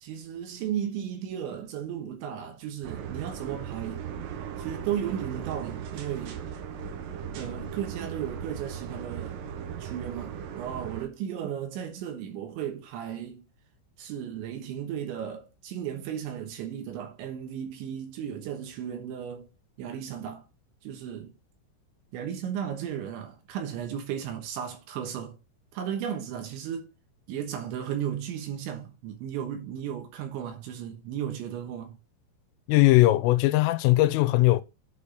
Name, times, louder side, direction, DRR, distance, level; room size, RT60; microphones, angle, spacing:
voice 1, 0.0-4.1 4.6-6.4 7.3-9.4 9.8-13.5 14.0-19.5 19.8-20.5 20.8-21.3 22.1-25.4 25.7-26.9 27.3-32.0, right 9 dB, 75° right, 3.3 m, -35 dB
sound 1, 2.8-11.1, right 8 dB, 90° right, 3.9 m, -37 dB
voice 2, 32.7-34.6, left 17 dB, 85° left, 3.3 m, -20 dB
8.7 x 4.3 x 5.0 m
omnidirectional pair, 5.8 m